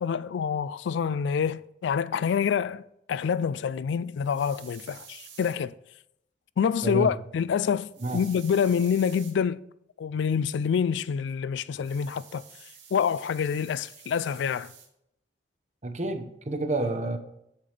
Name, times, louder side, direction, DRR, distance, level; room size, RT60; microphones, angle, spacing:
voice 1, 0.0-5.7 6.6-9.6 10.0-12.4 12.9-14.7, left 7 dB, 75° left, 0.3 m, -27 dB
sound 1, 4.2-5.6 7.9-9.3 11.8-14.9, right 7 dB, 85° right, 2.1 m, -49 dB
voice 2, 6.8-7.1 8.0-8.2 15.8-17.2, right 2 dB, 40° right, 0.8 m, -29 dB
7.4 x 7.4 x 3.3 m
head